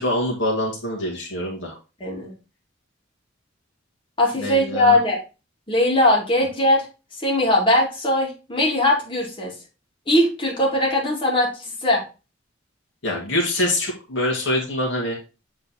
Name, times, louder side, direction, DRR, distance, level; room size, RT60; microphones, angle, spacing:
voice 1, 0.0-1.7 4.3-5.0 13.0-15.2, left 1 dB, 70° left, -2 dB, 2.0 m, -24 dB
voice 2, 2.0-2.3 4.2-5.2 5.7-6.8 7.2-9.5 10.1-11.5 11.8-12.0, left 1 dB, 25° left, -2 dB, 2.4 m, -20 dB
7.8 x 3.9 x 4.1 m, 0.30 s
head